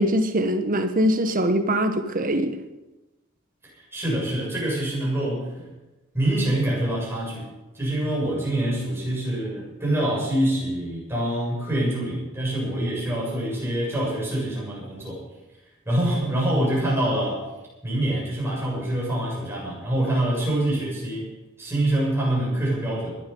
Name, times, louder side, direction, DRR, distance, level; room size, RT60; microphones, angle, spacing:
voice 1, 0.0-2.6, equal, 40° right, 8 dB, 1.3 m, -22 dB
voice 2, 3.6-5.7 6.1-15.2 15.9-17.4 17.8-21.3 21.6-23.1, right 1 dB, 10° right, -5 dB, 7.2 m, -25 dB
20.5 x 12.0 x 5.4 m, 1.1 s
head